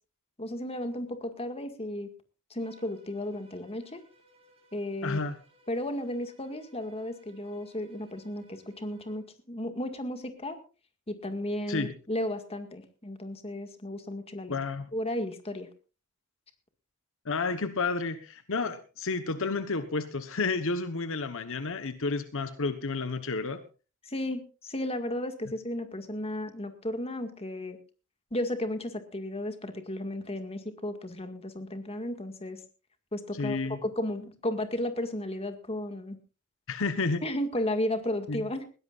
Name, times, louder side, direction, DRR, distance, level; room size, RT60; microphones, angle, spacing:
voice 1, 0.4-2.1 2.5-4.0 4.7-5.3 5.7-10.6 11.1-14.6 14.9-15.7 24.0-27.8 28.3-32.6 33.1-36.2 37.2-38.6, left 1 dB, 25° left, 8 dB, 2.0 m, -34 dB
Bowed string instrument, 2.5-9.3, right 1 dB, 25° right, 5.5 m, -62 dB
voice 2, 5.0-5.4 11.7-11.9 14.5-14.9 17.2-23.6 33.3-33.8 36.7-37.2 38.3-38.4, left 3 dB, 60° left, 10 dB, 1.1 m, -31 dB
20.5 x 16.5 x 2.5 m, 0.34 s
head